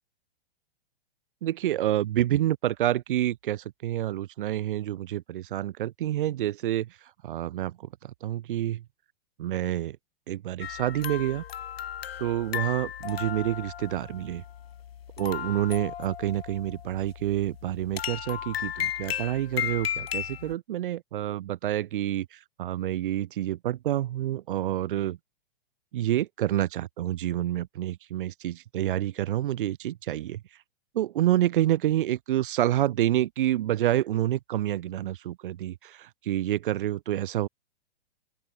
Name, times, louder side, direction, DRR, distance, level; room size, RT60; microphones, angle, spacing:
voice 1, 1.4-6.9 7.2-8.8 9.4-10.0 10.3-11.4 12.2-14.4 15.2-25.2 25.9-30.4 30.9-37.5, right 13 dB, 55° right, 1.1 m, -28 dB
sound 1, 10.6-20.5, left 10 dB, 70° left, 0.7 m, -35 dB
open air
figure-of-eight pair, 110°, 31 cm